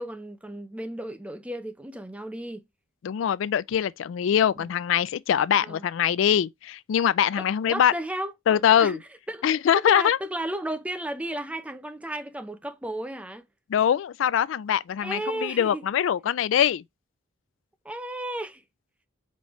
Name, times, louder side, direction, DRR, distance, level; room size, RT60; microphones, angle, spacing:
voice 1, 0.0-2.6 4.6-4.7 5.6-5.8 7.4-9.0 9.3-9.4 9.9-13.5 15.0-15.8 17.8-18.6, right 1 dB, 5° right, 0.5 m, -34 dB
voice 2, 3.0-7.9 8.5-9.0 9.4-10.2 13.7-16.8, left 9 dB, 75° left, 0.3 m, -23 dB
5.4 x 3.2 x 3.0 m
head